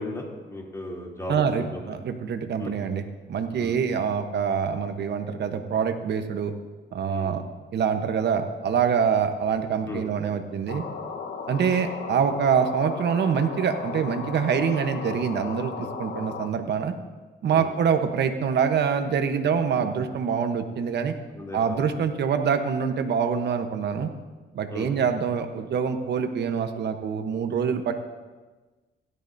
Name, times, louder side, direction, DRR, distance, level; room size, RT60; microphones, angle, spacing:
voice 1, 0.0-1.9 2.6-2.7 3.5-3.7 7.1-7.3 9.9-10.1 17.5-17.6 21.3-21.8 24.7-25.0, left 1 dB, 15° left, -2 dB, 3.0 m, -36 dB
voice 2, 1.3-6.5 6.9-7.4 7.7-10.8 11.5-16.9 17.4-21.1 21.5-24.1 24.5-27.9, right 7 dB, 60° right, 7 dB, 1.0 m, -25 dB
sound 1, 10.7-16.5, left 5 dB, 60° left, 1.2 m, -35 dB
16.0 x 10.5 x 2.7 m, 1.3 s
cardioid pair, 90°, 20 cm